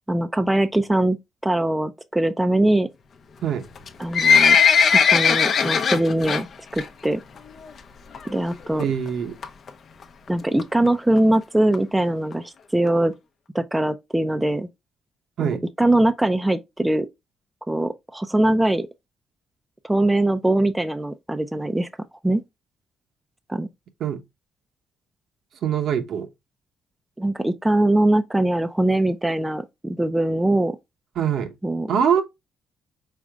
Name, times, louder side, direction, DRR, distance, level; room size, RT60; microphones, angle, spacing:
voice 1, 0.1-1.2 1.4-2.9 4.0-6.5 6.7-7.2 8.3-8.8 10.3-13.1 13.5-14.7 15.4-17.1 17.7-18.9 19.8-21.9 22.2-22.4 23.5-23.7 27.2-30.8 31.6-31.9, right 1 dB, 10° right, 0.4 m, -22 dB
Livestock farm animals working animals, 3.8-6.4 6.8-7.1 7.4-7.5 8.1-8.2 8.5-8.6 8.8-8.9 9.4-9.7 10.3-10.4 10.6-10.7 10.9-11.0 11.2-11.3 11.7-11.8 12.3-12.4 12.9-13.0, left 6 dB, 55° left, 0.7 m, -17 dB
voice 2, 8.8-9.4 15.4-15.6 24.0-24.2 25.6-26.3 31.2-31.5 31.9-32.2, right 8 dB, 70° right, 0.9 m, -23 dB
4.9 x 4.2 x 2.3 m
cardioid pair, 90°, 0 cm